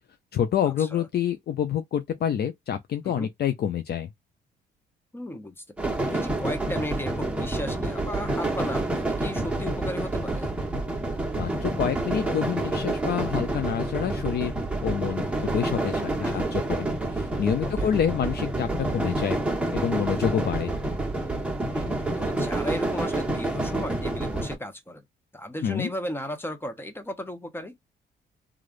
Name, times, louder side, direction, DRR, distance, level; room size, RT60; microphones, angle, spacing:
voice 1, 0.3-4.1 11.4-14.5 14.8-19.4 19.7-20.7 25.6-25.9, left 9 dB, 55° left, 0.5 m, -27 dB
voice 2, 5.1-10.5 16.2-16.5 17.8-17.9 21.7-25.0 25.3-27.8, left 1 dB, 10° left, 0.9 m, -35 dB
sound 1, 5.8-24.5, right 2 dB, 5° right, 1.3 m, -28 dB
3.2 x 2.4 x 2.5 m
cardioid pair, 90°, 20 cm